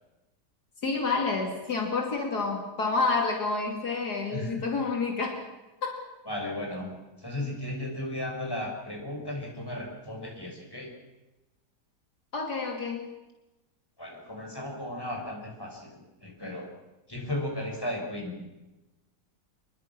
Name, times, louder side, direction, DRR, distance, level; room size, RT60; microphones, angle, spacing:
voice 1, 0.8-5.4 5.8-6.0 12.3-13.1, left 4 dB, 70° left, 2 dB, 3.1 m, -29 dB
voice 2, 4.3-4.6 6.2-6.9 7.2-10.9 14.0-16.7 17.1-18.4, left 1 dB, 15° left, 0 dB, 5.9 m, -35 dB
27.5 x 22.0 x 6.1 m, 1.0 s
omnidirectional pair, 1.8 m